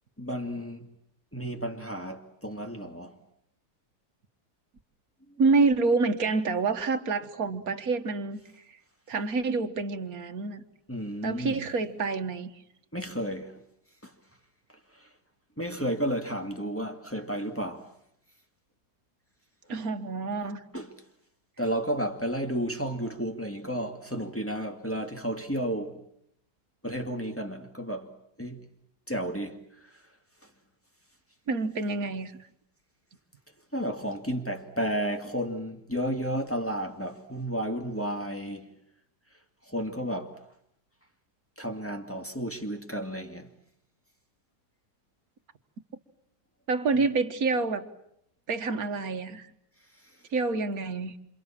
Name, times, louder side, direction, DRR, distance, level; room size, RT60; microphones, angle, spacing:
voice 1, 0.2-0.9 1.3-3.2 5.3-5.4 10.9-11.6 12.9-13.5 14.0-14.1 14.9-15.1 15.6-17.9 20.7-20.9 21.6-26.0 26.8-28.1 28.4-28.6 29.1-29.9 33.7-38.7 39.7-40.4 41.6-43.5, equal, 10° left, 2.3 m, -32 dB
voice 2, 5.4-8.4 8.7-8.8 9.1-10.6 11.2-12.5 19.7-20.6 31.5-32.4 46.7-47.9 48.5-49.5 50.3-51.2, right 4 dB, 60° right, 1.9 m, -27 dB
28.0 x 27.5 x 7.4 m
omnidirectional pair, 1.7 m